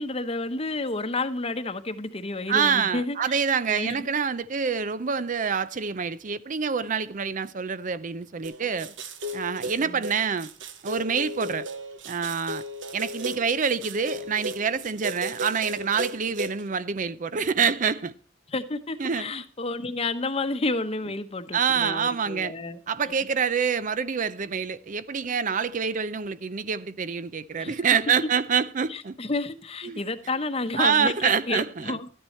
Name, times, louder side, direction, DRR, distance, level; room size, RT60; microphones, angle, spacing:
voice 1, 0.0-3.4 3.7-4.1 9.9-10.0 18.5-22.8 27.6-27.7 28.9-32.1, left 2 dB, 30° left, 0.9 m, -30 dB
voice 2, 2.5-8.9 9.3-10.5 10.8-11.7 12.1-12.6 12.9-18.1 19.0-19.4 21.5-22.5 22.9-29.2 29.8-30.0 30.7-32.0, right 6 dB, 45° right, 0.5 m, -26 dB
sound 1, 8.4-16.6, right 1 dB, 80° right, 1.2 m, -35 dB
12.5 x 10.0 x 4.3 m
head